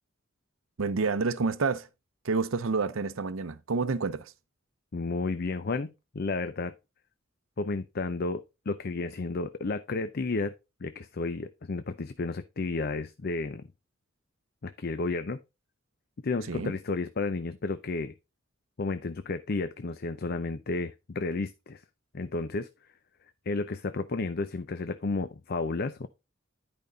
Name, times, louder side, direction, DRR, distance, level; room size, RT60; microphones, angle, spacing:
voice 1, 0.8-1.9 2.2-4.3 16.5-16.7, right 4 dB, 80° right, 0.6 m, -29 dB
voice 2, 4.9-6.7 7.6-10.5 10.8-13.6 14.6-15.4 16.2-18.1 18.8-21.8 22.1-22.7 23.5-26.1, left 3 dB, 50° left, 0.5 m, -32 dB
10.5 x 5.2 x 3.9 m
head